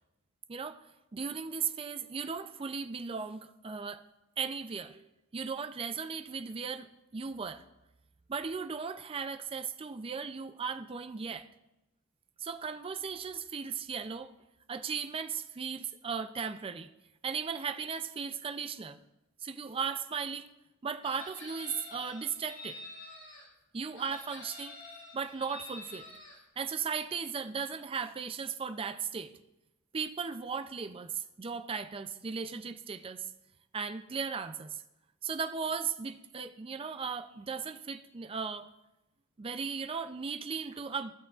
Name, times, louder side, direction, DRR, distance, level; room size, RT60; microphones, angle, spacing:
voice 1, 0.5-0.8 1.1-4.0 4.4-5.1 5.3-6.9 7.1-7.6 8.3-11.5 12.4-14.3 14.7-16.9 17.2-19.0 19.4-20.5 20.8-22.8 23.7-24.8 25.1-26.1 26.6-29.3 29.9-33.3 33.7-34.8 35.2-38.7 39.4-41.1, right 6 dB, 25° right, 0.4 m, -37 dB
Chicken rooster, 21.0-23.5 24.0-26.4, left 2 dB, 60° left, 2.7 m, -47 dB
15.5 x 6.2 x 2.4 m
head